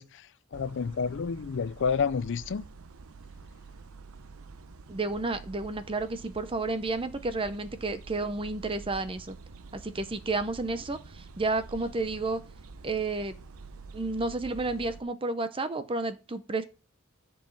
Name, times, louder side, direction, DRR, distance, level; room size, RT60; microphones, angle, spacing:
voice 1, 0.0-2.6, left 6 dB, 60° left, 0.4 m, -30 dB
sound 1, 0.5-15.0, right 4 dB, 80° right, 0.7 m, -48 dB
voice 2, 4.9-9.3 9.7-12.4 12.8-13.3 13.9-16.6, right 3 dB, 25° right, 0.7 m, -31 dB
10.5 x 4.7 x 7.3 m
head